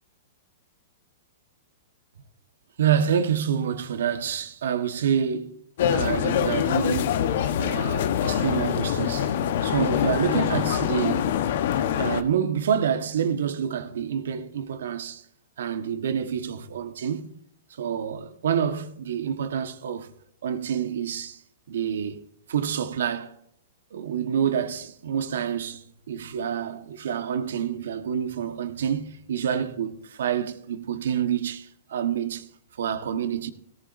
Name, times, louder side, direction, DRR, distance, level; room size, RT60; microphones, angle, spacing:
voice 1, 2.8-5.6 5.9-7.1 7.6-9.4 9.6-11.3 12.0-15.2 15.6-17.3 17.7-20.1 20.4-21.4 21.7-22.2 22.5-23.3 23.9-32.5 32.8-33.5, right 8 dB, 70° right, 1.4 m, -27 dB
sound 1, 5.8-12.2, left 9 dB, 60° left, 1.1 m, -24 dB
17.5 x 14.0 x 2.7 m
hypercardioid pair, 115°, 0 cm